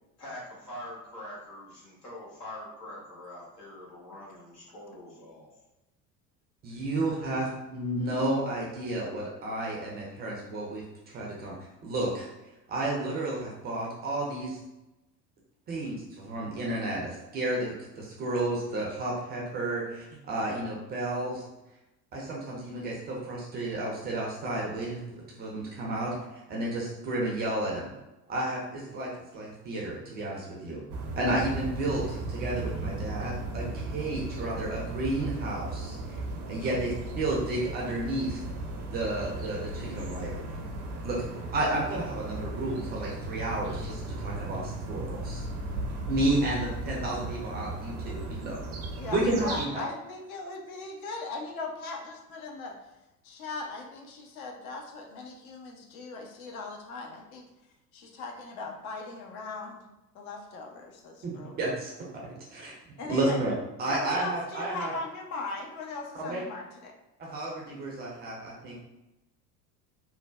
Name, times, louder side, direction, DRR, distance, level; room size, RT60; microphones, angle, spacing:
voice 1, 0.2-5.5, left 1 dB, 80° left, -6 dB, 1.1 m, -44 dB
voice 2, 6.6-11.6 11.8-12.3 12.7-14.6 15.7-21.4 22.1-25.0 25.4-26.2 26.5-27.9 28.3-30.8 31.1-36.2 36.5-38.4 38.8-40.4 41.0-41.2 41.5-45.4 46.1-48.6 49.1-49.8 61.2-61.9 62.2-62.7 63.1-64.9 66.2-66.4 67.2-68.7, right 2 dB, 20° right, -3 dB, 0.4 m, -32 dB
sound 1, 30.9-49.7, right 2 dB, 65° right, 0.6 m, -36 dB
voice 3, 49.0-52.8 53.2-57.4 57.9-59.8 60.1-61.7 63.0-63.4 63.9-66.9, left 3 dB, 60° left, 2 dB, 0.7 m, -39 dB
3.2 x 2.1 x 2.2 m, 0.97 s
figure-of-eight pair, 70°, 47 cm